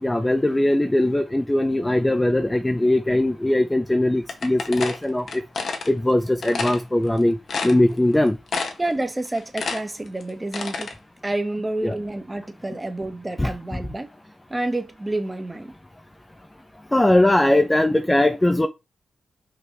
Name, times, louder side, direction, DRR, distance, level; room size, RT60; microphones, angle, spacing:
voice 1, 0.0-5.4 5.9-7.4 7.6-8.4 11.8-12.0 13.4-13.8 16.9-18.7, left 1 dB, 15° left, 0.7 m, -20 dB
sound 1, 4.3-5.9 6.4-6.8 7.2-7.3 7.5-8.1 8.5-8.9 9.2-10.9, left 4 dB, 65° left, 1.6 m, -29 dB
voice 2, 8.8-10.9 11.2-14.1 14.5-15.7, right 2 dB, 20° right, 1.6 m, -28 dB
5.5 x 5.4 x 4.1 m
cardioid pair, 80°, 0 cm